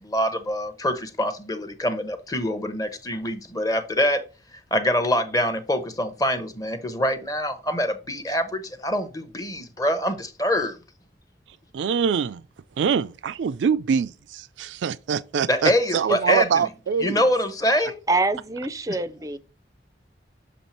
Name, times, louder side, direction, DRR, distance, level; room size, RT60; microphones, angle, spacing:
voice 1, 0.0-4.2 4.7-10.8 15.5-16.7 17.0-18.0, equal, 20° left, 0.7 m, -25 dB
voice 2, 11.7-12.4 12.8-17.2, right 6 dB, 90° right, 0.4 m, -24 dB
voice 3, 18.1-19.4, right 2 dB, 20° right, 0.4 m, -25 dB
7.1 x 3.2 x 4.2 m
head